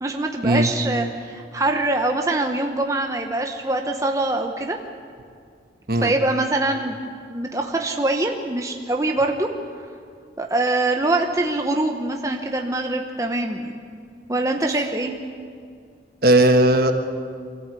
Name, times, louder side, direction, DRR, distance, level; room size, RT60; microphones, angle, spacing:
voice 1, 0.0-4.8 6.0-7.0 7.3-9.5 10.4-13.8 14.3-15.1, right 2 dB, 20° right, 3 dB, 1.0 m, -23 dB
voice 2, 16.2-16.9, right 1 dB, 55° right, 6 dB, 1.4 m, -16 dB
24.0 x 14.0 x 8.3 m, 2.2 s
head